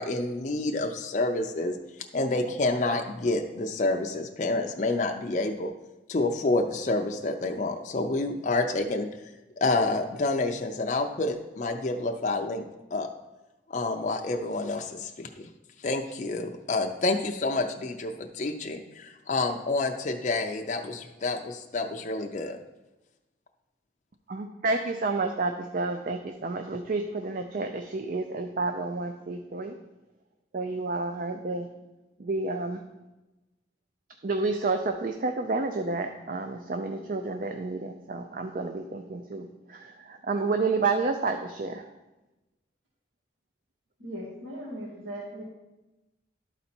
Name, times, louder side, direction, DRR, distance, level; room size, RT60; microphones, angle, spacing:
voice 1, 0.0-1.8 2.1-5.7 6.1-9.1 9.6-12.6 12.9-13.1 13.7-15.5 15.8-22.6, left 2 dB, 40° left, 3 dB, 0.5 m, -28 dB
voice 2, 24.3-29.8 30.5-31.7 32.2-32.8 34.2-41.9, right 3 dB, 50° right, 6 dB, 0.4 m, -30 dB
voice 3, 44.0-45.4, equal, 85° right, -7 dB, 2.2 m, -38 dB
11.5 x 4.1 x 4.3 m, 1.0 s
head